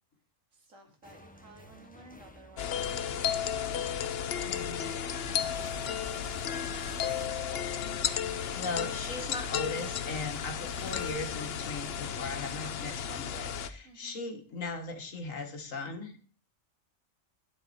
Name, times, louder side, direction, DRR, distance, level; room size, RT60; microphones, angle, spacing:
voice 1, 0.5-3.8 4.9-7.0 13.8-14.2, right 2 dB, 80° right, 2 dB, 2.7 m, -55 dB
sound 1, 1.0-13.5, left 1 dB, 5° left, 0.9 m, -55 dB
sound 2, 2.6-13.7, left 8 dB, 55° left, 0.8 m, -34 dB
voice 2, 4.4-5.3 8.4-16.3, left 3 dB, 80° left, 5 dB, 2.0 m, -39 dB
sound 3, 5.3-13.5, right 2 dB, 55° right, 2.9 m, -53 dB
10.0 x 7.6 x 4.2 m, 0.42 s
omnidirectional pair, 1.3 m